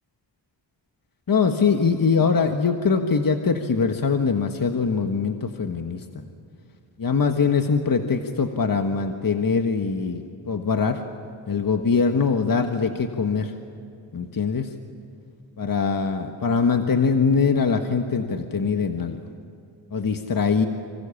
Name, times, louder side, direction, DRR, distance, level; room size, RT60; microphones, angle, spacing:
voice 1, 1.3-6.2 7.0-11.0 11.5-13.5 14.1-14.7 15.6-19.2 19.9-20.7, left 5 dB, 50° left, 5 dB, 1.6 m, -22 dB
28.0 x 25.5 x 7.2 m, 2.6 s
wide cardioid pair, 90°, 45 cm